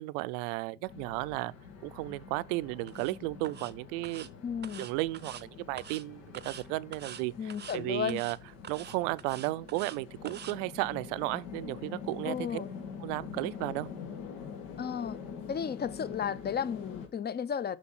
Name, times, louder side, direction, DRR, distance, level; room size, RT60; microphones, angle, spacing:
voice 1, 0.0-1.5 1.8-4.3 4.8-8.4 8.7-12.6 13.0-13.9, right 21 dB, 70° right, 0.5 m, -34 dB
sound 1, 0.7-9.3, left 8 dB, 55° left, 2.9 m, -60 dB
sound 2, 0.9-17.1, left 6 dB, 80° left, 2.2 m, -45 dB
sound 3, 2.9-3.1 3.4-3.7 4.0-4.3 4.6-5.4 5.8-6.0 6.3-6.6 6.9-7.2 7.5-7.8 8.1-8.4 8.6-10.0 10.3-10.5, right 8 dB, 25° right, 0.6 m, -45 dB
voice 2, 4.4-4.9 7.4-8.2 12.2-12.7 14.8-15.2 15.5-17.8, left 7 dB, 25° left, 0.6 m, -34 dB
6.1 x 5.3 x 5.9 m
hypercardioid pair, 70°, 39 cm